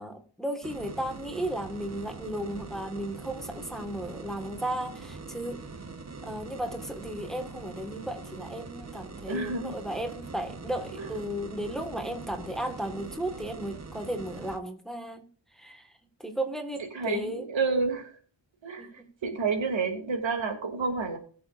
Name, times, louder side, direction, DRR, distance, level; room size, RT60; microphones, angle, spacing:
voice 1, 0.0-5.6 6.2-15.2 15.5-15.9 16.2-17.5 18.8-19.1, right 1 dB, ahead, 4 dB, 1.6 m, -35 dB
sound 1, 0.6-14.6, right 4 dB, 35° right, 1.1 m, -43 dB
voice 2, 9.3-9.8 10.9-11.1 16.9-18.2 18.6-21.2, right 4 dB, 85° right, 3 dB, 2.7 m, -30 dB
20.5 x 6.9 x 2.5 m, 0.43 s
wide cardioid pair, 100°, 44 cm